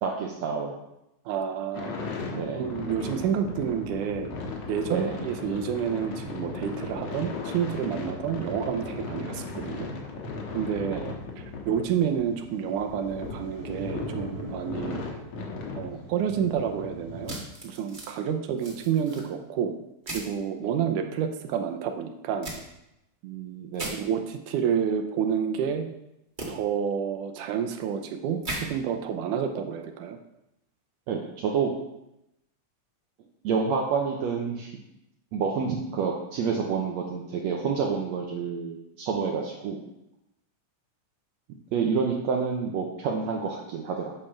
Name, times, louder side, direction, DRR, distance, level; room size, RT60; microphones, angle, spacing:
voice 1, 0.0-0.8 2.3-2.6 4.9-5.2 10.9-11.1 15.9-16.0 20.6-20.7 23.2-24.0 31.1-31.7 33.4-34.7 35.3-39.8 41.7-44.1, right 5 dB, 70° right, 0 dB, 1.8 m, -28 dB
voice 2, 1.3-1.9 2.5-4.3 4.7-9.9 10.5-11.0 11.4-15.0 15.7-17.4 17.6-19.8 20.1-22.5 23.8-25.9 26.5-30.2, right 8 dB, 90° right, 6 dB, 2.3 m, -29 dB
sound 1, 1.7-17.3, left 3 dB, 60° left, 2.3 m, -37 dB
sound 2, 13.5-16.4, right 5 dB, 50° right, 1.3 m, -45 dB
sound 3, 17.2-18.1 18.6-19.2 20.0-20.3 22.4-22.6 23.7-23.9 26.4-26.5 28.4-28.6, right 1 dB, 25° right, 1.0 m, -36 dB
8.5 x 5.4 x 6.0 m, 0.86 s
omnidirectional pair, 3.6 m